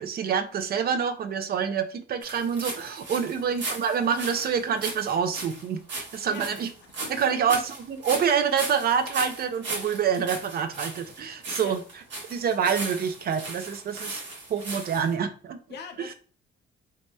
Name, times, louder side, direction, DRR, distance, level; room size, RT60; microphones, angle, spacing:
voice 1, 0.0-6.7 7.1-11.8 12.3-14.2 14.5-15.6 16.0-16.1, right 7 dB, 50° right, 9 dB, 0.5 m, -27 dB
sound 1, 2.2-15.1, right 3 dB, 65° right, 1.2 m, -37 dB
voice 2, 15.7-16.1, left 6 dB, 60° left, 3 dB, 0.6 m, -41 dB
3.1 x 2.8 x 2.2 m, 0.40 s
cardioid pair, 90°, 20 cm